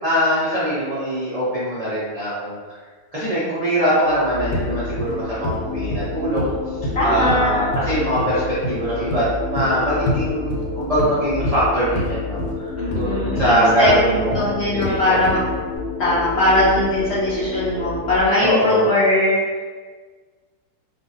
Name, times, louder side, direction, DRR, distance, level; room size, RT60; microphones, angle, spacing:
voice 1, 0.0-2.6 3.1-6.5 7.0-15.2 18.4-18.9, equal, 60° right, -11 dB, 0.3 m, -22 dB
sound 1, 3.8-18.2, left 3 dB, 25° right, 1.0 m, -29 dB
sound 2, 4.5-4.7 5.0-5.2 5.4-5.6 5.9-6.1 6.4-6.5 6.8-7.4 7.7-7.9 8.2-8.4 8.6-8.8 9.1-9.2 9.6-9.7 10.1-10.2 10.5-11.1 11.4-11.6 12.0-12.1 12.4-12.5 12.9-13.1 13.4-13.5 13.8-14.0 14.3-14.5 14.8-14.9 15.2-15.5 15.8-15.9, left 1 dB, 90° left, 1.2 m, -26 dB
voice 2, 6.9-7.5 12.8-15.4 16.0-19.7, left 1 dB, 60° left, -9 dB, 0.7 m, -20 dB
2.6 x 2.5 x 2.5 m, 1.5 s
omnidirectional pair, 1.7 m